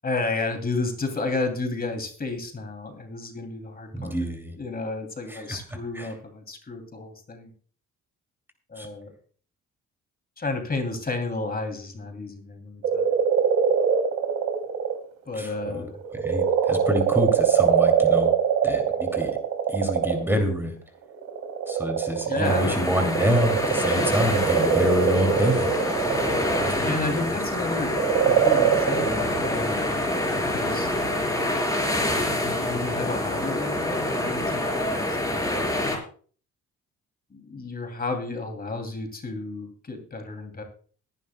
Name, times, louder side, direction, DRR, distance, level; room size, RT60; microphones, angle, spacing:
voice 1, 0.0-4.3 4.5-7.5 8.7-9.1 10.4-13.1 15.3-16.0 22.3-22.8 26.8-29.9 30.5-30.9 32.3-35.6 37.3-40.6, left 3 dB, 30° left, 4 dB, 2.8 m, -32 dB
voice 2, 3.9-4.6 5.3-5.6 5.9-6.1 8.8-8.9 15.4-15.9 16.1-18.3 18.6-19.3 19.7-20.7 21.7-25.7 26.6-27.3, equal, 5° right, 4 dB, 2.6 m, -27 dB
sound 1, 12.8-15.0 15.4-20.3 21.1-27.3 27.8-29.5, right 7 dB, 90° right, 3.1 m, -23 dB
sound 2, 22.4-36.0, left 1 dB, 10° left, 4.2 m, -26 dB
21.5 x 11.0 x 2.2 m, 0.42 s
cardioid pair, 90°, 30 cm